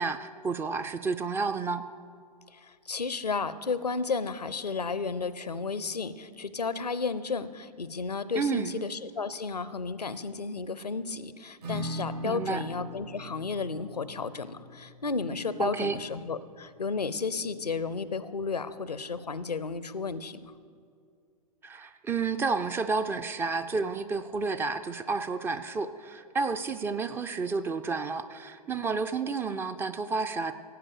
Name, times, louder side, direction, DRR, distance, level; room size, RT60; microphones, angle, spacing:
voice 1, 0.0-1.8 8.4-8.8 12.2-12.6 15.6-16.0 21.6-30.6, right 4 dB, 10° right, 10 dB, 0.3 m, -31 dB
voice 2, 2.5-20.5, left 4 dB, 80° left, 15 dB, 0.7 m, -33 dB
Acoustic guitar / Strum, 11.6-17.0, equal, 75° right, 3.3 m, -42 dB
16.5 x 8.4 x 6.6 m, 2.3 s
figure-of-eight pair, 100°, 20 cm